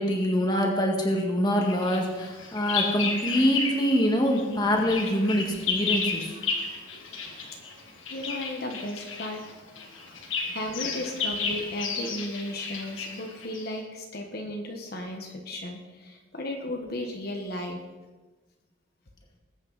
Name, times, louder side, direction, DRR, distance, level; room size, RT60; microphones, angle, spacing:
voice 1, 0.0-6.3, equal, 20° left, 1 dB, 1.9 m, -25 dB
Bird vocalization bird call bird song, 1.7-4.0 4.3-13.8, left 5 dB, 85° left, 1.9 m, -33 dB
voice 2, 7.9-9.4 10.1-17.8, left 1 dB, 50° left, 2 dB, 1.3 m, -35 dB
20.0 x 8.9 x 4.1 m, 1.2 s
head